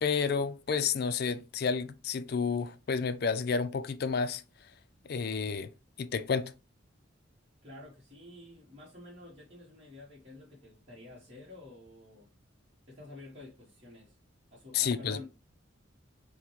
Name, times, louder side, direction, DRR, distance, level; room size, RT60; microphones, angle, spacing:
voice 1, 0.0-4.4 5.1-5.7 6.0-6.5 14.7-15.2, left 5 dB, 50° left, 0.4 m, -30 dB
voice 2, 7.6-12.3 12.9-14.2 14.5-15.3, left 2 dB, 30° right, 1.1 m, -50 dB
5.8 x 2.2 x 3.0 m
head